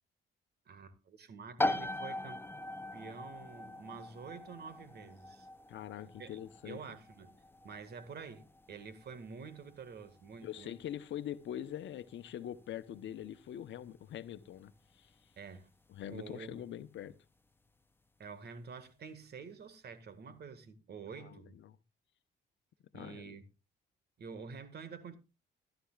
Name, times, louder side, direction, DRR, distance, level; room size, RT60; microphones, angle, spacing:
voice 1, 0.7-2.4 2.9-5.5 6.2-6.4 6.6-10.8 15.4-15.7 16.1-16.5 18.2-21.6 22.9-23.4 24.2-25.2, right 5 dB, 55° right, 1.9 m, -48 dB
sound 1, 1.6-16.1, left 1 dB, 10° left, 0.8 m, -42 dB
voice 2, 5.7-6.8 10.4-15.1 15.9-17.1 21.2-21.8 22.9-23.4, left 11 dB, 70° left, 1.0 m, -43 dB
15.0 x 12.5 x 2.4 m
cardioid pair, 90°, 20 cm